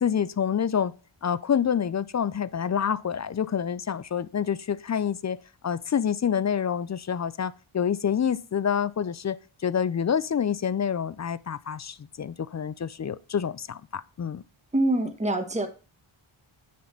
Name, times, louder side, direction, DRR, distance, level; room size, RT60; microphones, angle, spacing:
voice 1, 0.0-0.9 1.2-5.4 5.6-14.4, left 8 dB, 35° left, 0.4 m, -27 dB
voice 2, 14.7-15.7, right 1 dB, 15° right, 1.3 m, -25 dB
9.4 x 4.1 x 5.8 m
cardioid pair, 60°, 50 cm